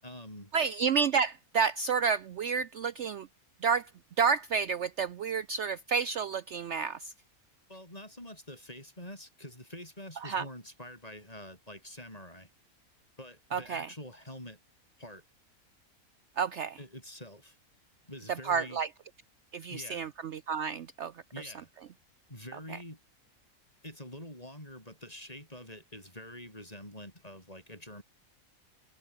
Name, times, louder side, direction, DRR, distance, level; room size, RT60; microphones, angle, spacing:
voice 1, 0.0-0.5 7.7-12.5 13.2-14.6 15.0-15.2 16.8-17.6 18.0-18.8 19.7-20.1 21.3-21.7 22.3-23.0 23.8-28.0, left 1 dB, 25° left, 7.8 m, -46 dB
voice 2, 0.5-3.3 3.6-3.9 4.2-7.1 10.2-10.4 13.5-13.9 16.4-16.8 18.4-18.9 19.5-21.5 22.7-22.8, right 6 dB, 60° right, 0.9 m, -30 dB
omnidirectional pair, 1.5 m